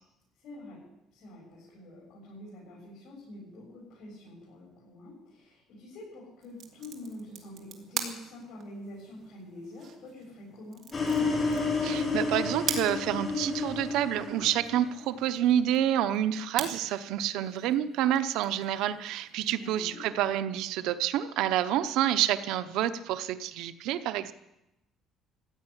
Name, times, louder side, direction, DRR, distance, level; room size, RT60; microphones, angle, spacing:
voice 1, 0.4-0.8 1.1-10.8 19.5-20.1, left 1 dB, 65° left, -5 dB, 7.5 m, -46 dB
sound 1, 6.4-19.9, right 7 dB, 55° right, 2.5 m, -43 dB
sound 2, 10.9-15.0, left 4 dB, 30° left, 4.2 m, -30 dB
voice 2, 11.8-24.3, right 11 dB, 85° right, 12 dB, 0.8 m, -28 dB
15.5 x 8.8 x 10.0 m, 0.90 s
cardioid pair, 125°, 0 cm